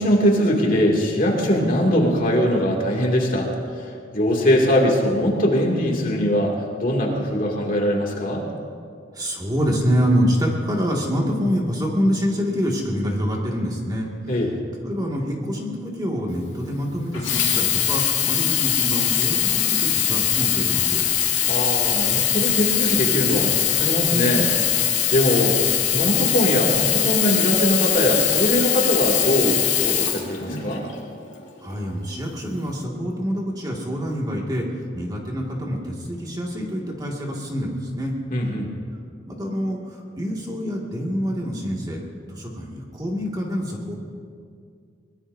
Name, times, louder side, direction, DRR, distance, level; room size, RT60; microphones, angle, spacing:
voice 1, 0.0-3.5 3.8-6.5 6.8-8.4 14.3-14.5 21.5-24.5 24.8-30.8 38.3-38.7, equal, 45° left, -1 dB, 2.6 m, -21 dB
voice 2, 9.1-14.1 14.8-21.0 31.6-34.7 34.9-38.1 39.3-42.0 42.3-44.0, equal, 20° right, -2 dB, 2.2 m, -26 dB
Sink (filling or washing), 17.1-30.9 31.6-31.7, left 10 dB, 85° left, 2.4 m, -21 dB
23.0 x 20.5 x 2.8 m, 2.2 s
head